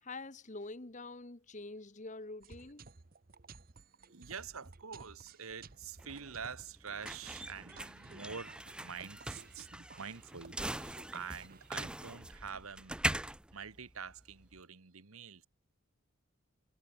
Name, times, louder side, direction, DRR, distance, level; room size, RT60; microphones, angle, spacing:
voice 1, 0.0-2.9, left 2 dB, 35° left, 1.1 m, -46 dB
sound 1, 2.4-12.1, right 4 dB, 45° right, 0.9 m, -56 dB
voice 2, 4.1-9.7 10.0-15.5, right 6 dB, 80° right, 1.4 m, -46 dB
sound 2, 5.5-14.6, right 1 dB, 5° right, 0.4 m, -41 dB
head